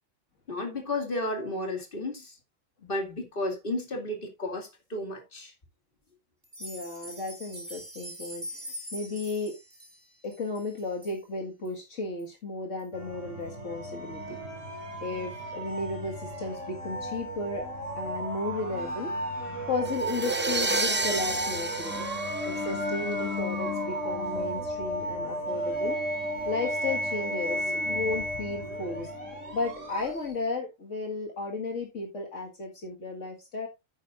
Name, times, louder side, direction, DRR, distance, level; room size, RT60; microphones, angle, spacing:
voice 1, 0.5-2.4 2.8-5.5, left 1 dB, 40° left, 2.7 m, -33 dB
sound 1, 6.4-11.2 11.7-11.8 12.2-12.3 12.8-12.9, equal, 35° right, 2.8 m, -43 dB
voice 2, 6.6-9.6 10.2-14.4 15.0-17.7 18.0-19.1 19.7-22.0 22.5-26.0 26.5-29.1 29.5-33.7, left 3 dB, 65° left, 2.2 m, -34 dB
sound 2, 12.9-30.4, equal, 65° right, 3.2 m, -34 dB
sound 3, 19.9-23.1, right 2 dB, 20° right, 0.3 m, -30 dB
10.5 x 9.3 x 2.5 m
omnidirectional pair, 1.4 m